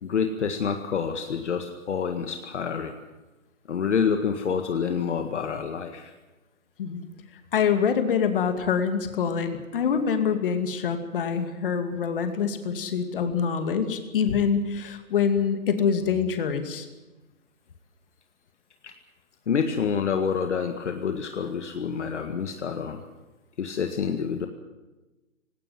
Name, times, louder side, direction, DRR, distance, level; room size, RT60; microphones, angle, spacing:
voice 1, 0.0-2.9 3.7-6.1 18.8-18.9 19.5-23.0 23.6-24.5, left 6 dB, 55° left, 6 dB, 1.9 m, -27 dB
voice 2, 7.5-16.9, left 6 dB, 40° left, 8 dB, 2.4 m, -25 dB
19.0 x 17.5 x 9.2 m, 1.1 s
hypercardioid pair, 165°, 41 cm